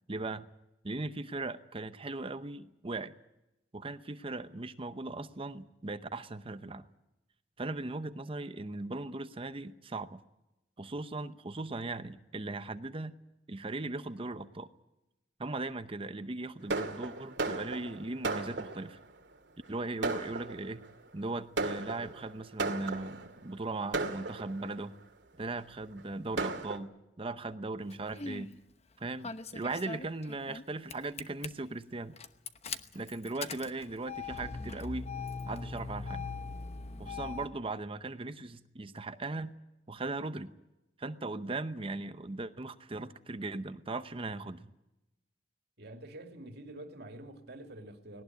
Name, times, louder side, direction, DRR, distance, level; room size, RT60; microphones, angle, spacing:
voice 1, 0.1-0.5 0.8-3.1 3.7-6.9 7.6-10.2 10.8-13.2 13.5-14.7 15.4-19.0 19.7-20.9 21.1-24.9 25.4-26.9 27.2-28.5 29.0-32.2 32.9-35.1 35.4-36.3 37.0-39.6 39.9-40.5 41.0-44.7, right 2 dB, 30° right, 0.8 m, -38 dB
Fireworks, 16.7-19.0 19.6-19.7 20.0-20.9 21.6-23.3 23.9-24.8 25.5-25.6 26.0-26.1 26.4-26.8, right 3 dB, 80° right, 2.3 m, -35 dB
Engine starting, 27.9-28.5 29.2-30.6 30.9-31.5 32.2-37.5, left 4 dB, 35° left, 1.0 m, -40 dB
voice 2, 45.8-48.2, right 1 dB, 65° right, 2.7 m, -47 dB
19.0 x 18.5 x 9.4 m
head